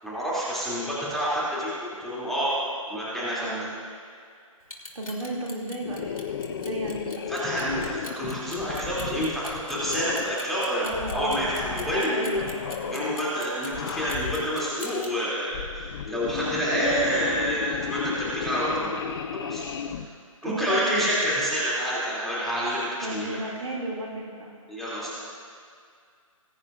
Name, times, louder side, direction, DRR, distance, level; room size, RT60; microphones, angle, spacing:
voice 1, 0.0-2.5 2.9-3.7 7.3-10.9 11.1-12.4 12.9-18.9 19.3-20.0 20.4-23.4 24.7-25.1, equal, ahead, -9 dB, 2.8 m, -28 dB
Clock, 4.6-15.1, left 2 dB, 85° left, 2.2 m, -41 dB
voice 2, 4.9-7.3 10.8-11.8 12.1-13.1 20.4-21.1 23.0-24.5, right 1 dB, 70° right, -2 dB, 2.6 m, -34 dB
sound 1, 5.8-10.4 10.9-12.0 12.3-13.2 13.6-14.7 15.4-20.1, left 8 dB, 45° left, 0.6 m, -34 dB
20.5 x 9.6 x 2.5 m, 2.2 s
figure-of-eight pair, 140°, 18 cm